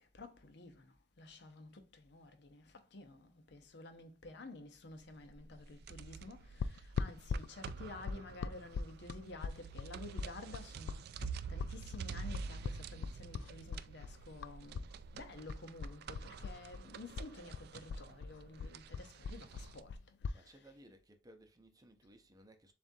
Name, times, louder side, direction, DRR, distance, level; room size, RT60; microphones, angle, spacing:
voice 1, 0.0-11.2 11.5-20.0 20.3-20.7, left 2 dB, 65° left, 0.8 m, -52 dB
sound 1, 5.0-19.8, right 5 dB, 60° right, 0.3 m, -48 dB
sound 2, 6.6-14.9 15.2-16.9 17.1-20.4, left 5 dB, 85° left, 0.3 m, -41 dB
voice 2, 20.3-22.7, right 1 dB, 20° right, 0.7 m, -60 dB
7.2 x 2.5 x 2.7 m
head